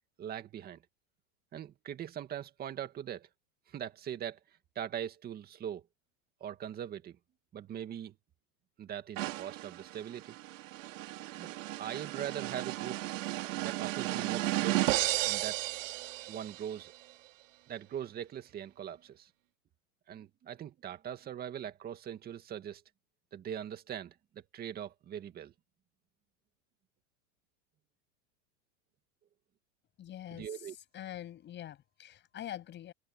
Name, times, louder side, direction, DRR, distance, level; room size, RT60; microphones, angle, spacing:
voice 1, 0.2-0.8 1.5-3.3 3.7-4.4 4.8-5.8 6.4-7.2 7.5-8.1 8.8-10.4 11.4-11.5 11.8-13.0 13.6-15.6 16.3-16.9 17.7-19.3 20.1-22.8 23.3-25.5 30.3-30.8, right 10 dB, 25° right, 2.1 m, -41 dB
sound 1, 9.2-16.7, right 17 dB, 75° right, 3.2 m, -34 dB
voice 2, 30.0-30.5 30.9-32.9, left 11 dB, 30° left, 7.9 m, -44 dB
open air
supercardioid pair, 155°, 38 cm